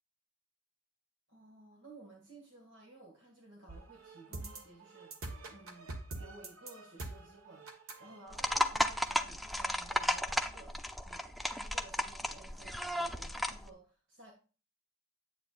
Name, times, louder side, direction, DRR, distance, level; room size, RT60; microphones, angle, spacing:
voice 1, 1.3-5.1 5.5-10.7 11.0-14.3, right 2 dB, 65° right, -1 dB, 1.9 m, -56 dB
sound 1, 3.7-8.7, right 2 dB, 85° right, 1.2 m, -46 dB
sound 2, 8.3-13.7, equal, ahead, 0.3 m, -34 dB
9.0 x 8.0 x 2.5 m, 0.36 s
head